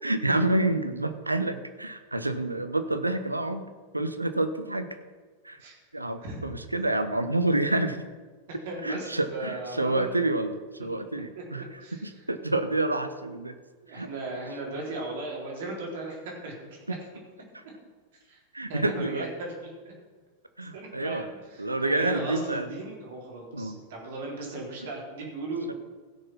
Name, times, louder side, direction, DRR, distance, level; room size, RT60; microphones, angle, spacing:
voice 1, 0.0-3.7 3.9-4.9 5.4-5.6 5.9-8.0 8.8-13.6 13.9-14.1 14.5-14.6 16.9-17.0 17.5-17.6 18.5-19.3 20.6-21.3 21.6-22.7 23.5-23.8 24.8-24.9 25.2-25.3 25.7-25.8, right 2 dB, 85° right, 10 dB, 0.8 m, -28 dB
voice 2, 8.6-10.1 10.8-11.0 11.6-12.1 13.8-17.0 18.2-18.4 18.7-19.9 20.7-25.7, right 2 dB, 55° right, -2 dB, 3.9 m, -37 dB
16.0 x 6.6 x 5.8 m, 1.4 s
figure-of-eight pair, 90°, 0 cm